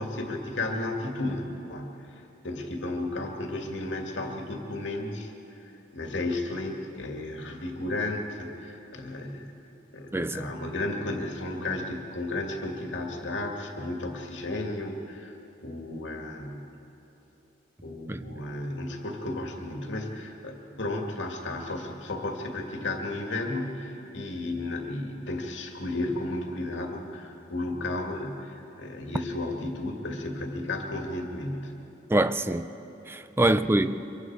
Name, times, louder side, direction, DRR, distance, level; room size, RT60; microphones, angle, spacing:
voice 1, 0.0-5.3 5.6-9.5 9.9-15.3 15.6-16.7 17.8-31.7 33.4-33.6, left 2 dB, 90° left, 2.2 m, -33 dB
voice 2, 10.1-10.5 18.1-18.3 32.1-32.7 33.1-34.1, right 1 dB, 15° right, 0.5 m, -25 dB
24.5 x 22.5 x 4.8 m
head